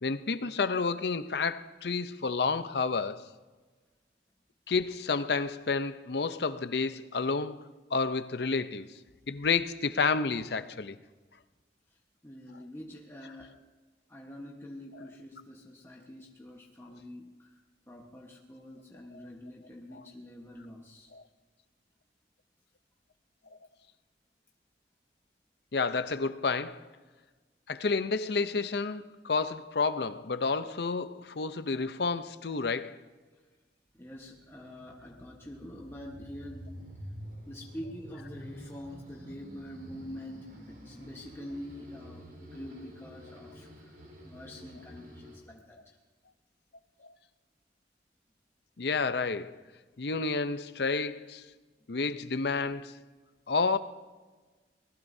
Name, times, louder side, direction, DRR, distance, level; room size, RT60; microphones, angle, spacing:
voice 1, 0.0-3.3 4.7-7.6 7.9-8.9 9.3-11.0 21.1-21.2 25.7-26.8 27.7-33.0 48.8-49.6 50.0-51.4 51.9-53.0 53.5-53.8, left 4 dB, 65° left, 0.6 m, -30 dB
voice 2, 11.9-13.6 14.1-17.6 17.9-21.1 33.3-33.4 34.0-36.9 37.5-46.0, left 1 dB, 15° left, 1.2 m, -46 dB
sound 1, 34.1-45.4, equal, 65° right, 4.3 m, -48 dB
24.5 x 19.0 x 2.7 m
head